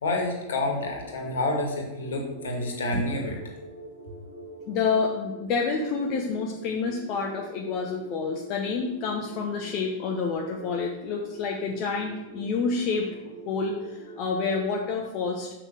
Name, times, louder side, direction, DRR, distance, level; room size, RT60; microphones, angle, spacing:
voice 1, 0.0-3.4, left 2 dB, 65° left, 1 dB, 2.1 m, -28 dB
sound 1, 0.8-14.5, right 1 dB, 75° right, 1.9 m, -44 dB
voice 2, 4.7-13.1 13.5-15.5, left 4 dB, 40° left, 0 dB, 1.0 m, -28 dB
6.3 x 5.8 x 6.8 m, 1.0 s
figure-of-eight pair, 90°, 0 cm